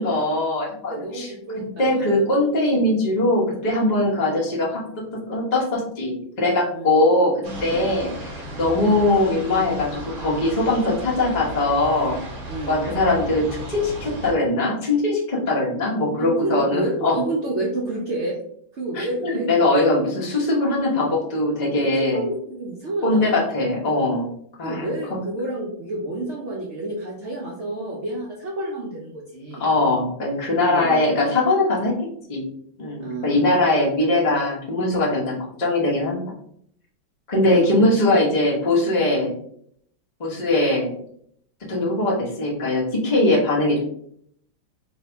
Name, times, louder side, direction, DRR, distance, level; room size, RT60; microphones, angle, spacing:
voice 1, 0.0-1.3 1.8-4.8 5.3-7.3 7.6-12.2 12.7-17.2 18.9-22.3 23.0-24.3 24.6-24.9 29.6-31.9 32.3-32.5 32.8-36.2 37.3-39.3 40.2-40.9 41.7-43.8, left 2 dB, 30° left, -4 dB, 0.9 m, -21 dB
voice 2, 0.9-2.2 4.0-4.1 6.7-6.9 7.7-7.8 12.5-12.8 16.2-18.4 18.7-19.9 22.1-23.4 24.6-29.7 30.7-30.9 33.0-33.6 37.5-37.8, right 1 dB, 85° right, -4 dB, 0.6 m, -29 dB
sound 1, 7.4-14.3, equal, 55° right, 1.2 m, -35 dB
3.3 x 2.8 x 4.4 m, 0.67 s
omnidirectional pair, 2.2 m